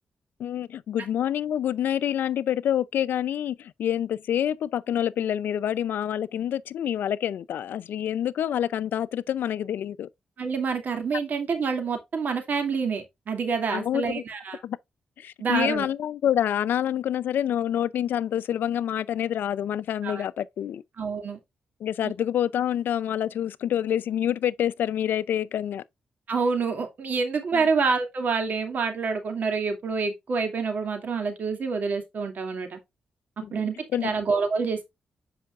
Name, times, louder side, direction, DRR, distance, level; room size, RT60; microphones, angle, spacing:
voice 1, 0.4-10.1 13.7-14.2 14.6-14.8 15.2-20.8 21.8-25.8 27.5-27.6 33.4-33.5 33.9-34.1, left 10 dB, 85° left, 0.5 m, -27 dB
voice 2, 10.4-14.6 15.4-15.9 20.0-20.2 21.0-21.4 22.0-22.1 26.3-32.8 33.5-33.8 34.0-34.8, right 5 dB, 60° right, 2.4 m, -27 dB
8.3 x 5.6 x 2.4 m
cardioid pair, 80°, 3 cm